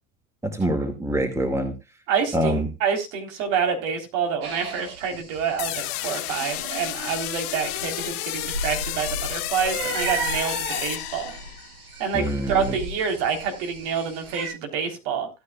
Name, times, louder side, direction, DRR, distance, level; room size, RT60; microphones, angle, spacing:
voice 1, 0.4-1.7 2.3-2.7 12.1-12.8, right 1 dB, 5° right, 7 dB, 2.1 m, -25 dB
voice 2, 2.1-11.3 12.0-15.3, right 6 dB, 60° right, 5 dB, 3.7 m, -27 dB
sound 1, 4.4-14.5, right 3 dB, 85° right, 7.1 m, -35 dB
sound 2, 5.6-11.7, left 17 dB, 60° left, 1.4 m, -31 dB
16.5 x 9.7 x 2.3 m, 0.25 s
hypercardioid pair, 90°, 44 cm